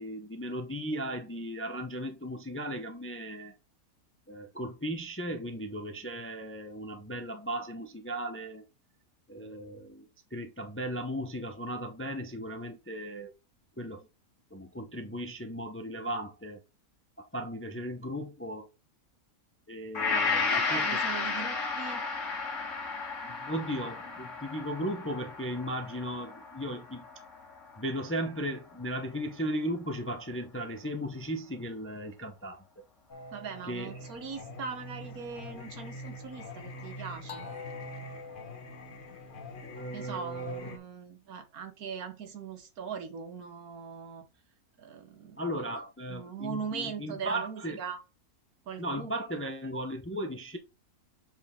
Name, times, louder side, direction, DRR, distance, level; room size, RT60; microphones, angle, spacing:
voice 1, 0.0-3.5 4.3-8.6 9.3-10.0 10.3-13.3 13.8-14.1 14.5-16.6 17.2-18.7 19.7-21.0 23.2-27.0 27.8-32.6 33.7-33.9 39.6-40.8 45.4-47.8 48.8-50.6, equal, 15° left, 0.4 m, -36 dB
Gong, 19.9-28.3 28.7-28.8, left 4 dB, 55° left, 1.8 m, -33 dB
voice 2, 20.0-22.0 33.3-37.5 39.9-44.3 44.8-45.4 46.1-48.0 48.7-49.2, right 6 dB, 75° right, 1.6 m, -40 dB
Singing, 33.1-40.8, left 2 dB, 40° left, 1.0 m, -44 dB
7.4 x 4.3 x 3.6 m
omnidirectional pair, 1.6 m